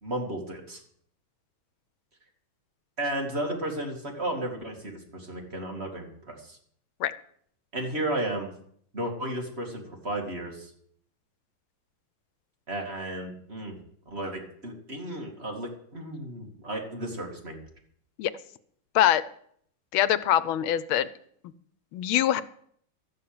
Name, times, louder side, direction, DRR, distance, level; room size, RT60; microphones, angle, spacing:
voice 1, 0.0-0.8 3.0-6.6 7.7-8.5 8.9-10.7 12.7-13.7 14.1-17.6, right 1 dB, 30° right, 1 dB, 2.6 m, -33 dB
voice 2, 19.9-21.1 21.9-22.4, left 11 dB, 85° left, 16 dB, 1.5 m, -23 dB
13.0 x 7.0 x 8.7 m, 0.64 s
omnidirectional pair, 2.2 m